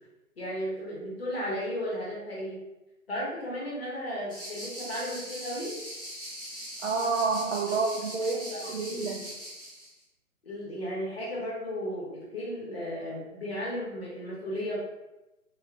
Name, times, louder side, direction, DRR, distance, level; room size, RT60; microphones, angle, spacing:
voice 1, 0.4-2.6 3.1-5.7 7.6-7.7 8.2-8.6 8.9-9.2 10.4-14.8, equal, 45° left, -6 dB, 1.3 m, -35 dB
sound 1, 4.3-9.9, equal, 5° right, 0.9 m, -41 dB
voice 2, 6.8-9.3, right 4 dB, 55° right, -1 dB, 0.5 m, -29 dB
3.0 x 2.3 x 3.3 m, 1.0 s
hypercardioid pair, 175°, 42 cm